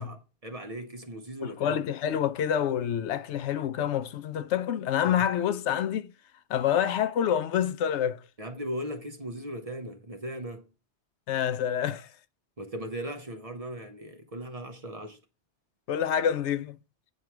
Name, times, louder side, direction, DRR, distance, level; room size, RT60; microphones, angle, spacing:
voice 1, 0.0-1.8 5.1-5.2 8.4-10.7 12.6-15.2, right 1 dB, 35° right, 0.8 m, -38 dB
voice 2, 1.4-6.1 6.5-8.2 11.3-12.1 15.9-16.8, left 9 dB, 85° left, 0.9 m, -27 dB
8.5 x 4.6 x 4.6 m
omnidirectional pair, 1.1 m